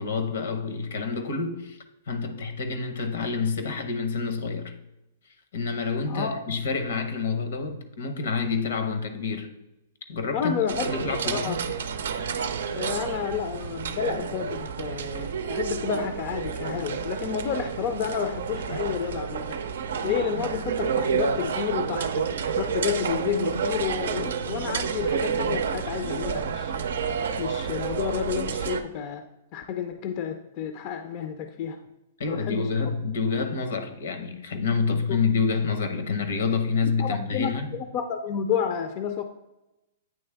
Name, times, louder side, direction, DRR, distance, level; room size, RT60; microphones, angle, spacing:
voice 1, 0.0-1.8 2.1-4.7 5.5-9.5 10.1-11.6 32.2-37.8, left 5 dB, 75° left, 8 dB, 0.8 m, -28 dB
voice 2, 6.1-6.4 10.3-10.9 11.2-11.6 12.7-19.6 20.0-22.3 22.6-26.7 27.4-29.2 29.5-31.8 32.2-32.7 35.1-35.2 37.0-39.2, left 8 dB, 40° left, 7 dB, 0.4 m, -30 dB
sound 1, 10.7-28.8, right 6 dB, 75° right, 0.5 m, -30 dB
8.6 x 3.2 x 3.4 m, 0.94 s
hypercardioid pair, 140°, 0 cm